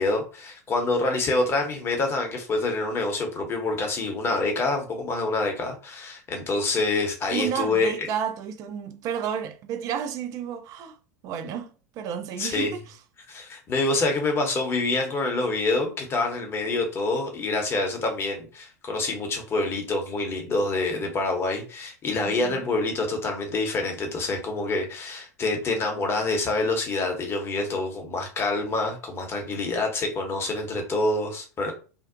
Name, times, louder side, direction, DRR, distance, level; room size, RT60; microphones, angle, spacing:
voice 1, 0.0-8.1 12.4-12.7 13.3-31.7, left 2 dB, 25° left, 0.8 m, -26 dB
voice 2, 7.3-11.0 11.2-13.0 22.2-22.7, right 8 dB, 40° right, 0.4 m, -31 dB
2.5 x 2.0 x 2.5 m
figure-of-eight pair, 90°, 9 cm